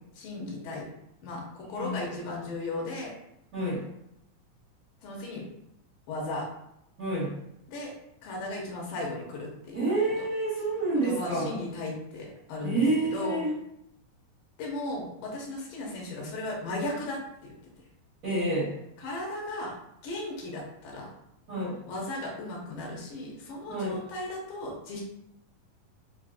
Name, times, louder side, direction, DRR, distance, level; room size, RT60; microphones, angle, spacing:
voice 1, 0.2-0.9 1.2-3.1 5.0-5.4 6.1-6.5 7.7-7.9 8.2-9.9 11.0-12.8 13.1-13.4 14.6-17.5 19.0-19.7 20.0-21.1 21.9-25.0, left 2 dB, 85° left, -1 dB, 2.4 m, -36 dB
voice 2, 3.5-3.8 7.0-7.3 9.7-11.5 12.6-13.5 18.2-18.7 21.5-21.8 23.7-24.0, right 2 dB, 75° right, -10 dB, 0.7 m, -28 dB
6.0 x 2.0 x 2.4 m, 0.79 s
omnidirectional pair, 3.9 m